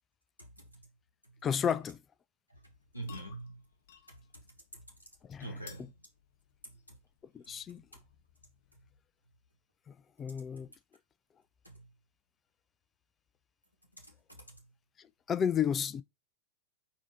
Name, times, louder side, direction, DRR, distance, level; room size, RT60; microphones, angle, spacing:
voice 1, 0.4-0.9 1.2-1.3 2.5-3.6 4.1-4.4 4.7-4.9 5.4-5.9 6.6-7.0 7.4-8.0 10.6-10.7 11.6-11.9 13.9-14.6, right 2 dB, 85° left, 0.9 m, -47 dB
voice 2, 1.4-2.0 5.3-5.5 7.3-7.8 10.2-10.7 15.0-16.0, left 8 dB, 25° left, 0.3 m, -32 dB
sound 1, 2.7-9.1, left 8 dB, 60° left, 0.7 m, -59 dB
4.6 x 2.8 x 4.1 m
figure-of-eight pair, 90°, 0 cm